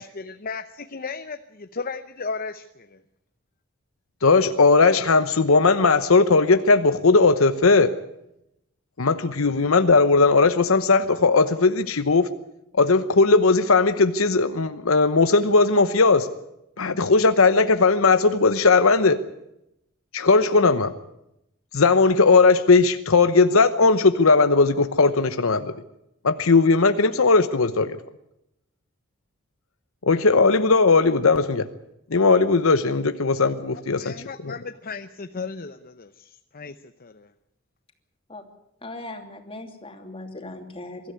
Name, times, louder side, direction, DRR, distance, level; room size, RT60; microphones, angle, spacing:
voice 1, 0.0-3.0 34.0-37.3, left 4 dB, 45° left, 10 dB, 0.8 m, -35 dB
voice 2, 4.2-7.9 9.0-12.3 12.7-16.3 16.8-19.2 20.1-20.9 21.7-25.7 26.2-28.0 30.0-31.7 32.1-34.1 34.4-34.5, left 3 dB, 75° left, 10 dB, 0.9 m, -18 dB
voice 3, 38.8-41.1, left 2 dB, 25° left, 4 dB, 2.9 m, -38 dB
23.0 x 13.5 x 9.6 m, 0.84 s
head